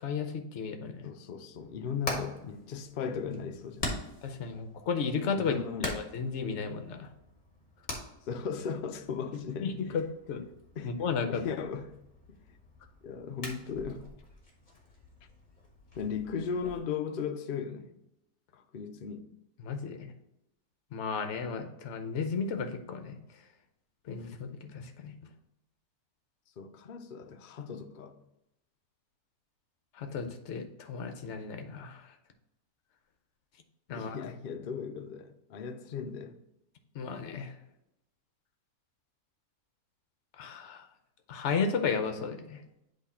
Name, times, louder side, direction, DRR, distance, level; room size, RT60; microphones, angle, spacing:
voice 1, 0.0-1.1 4.2-5.6 5.8-7.1 9.6-10.4 10.8-11.4 19.6-20.1 20.9-23.2 24.1-25.1 29.9-32.1 33.9-34.2 36.9-37.5 40.4-40.8 41.3-42.6, left 5 dB, 55° left, 1.0 m, -34 dB
voice 2, 1.0-4.0 5.4-5.9 8.3-9.7 10.8-10.9 11.3-12.0 12.3-12.4 13.0-14.0 16.0-17.9 18.5-19.2 26.6-28.2 33.9-36.4, left 6 dB, 90° left, 0.4 m, -37 dB
Hammer, 1.5-16.8, left 2 dB, 30° left, 1.4 m, -44 dB
8.1 x 3.2 x 4.2 m
omnidirectional pair, 1.6 m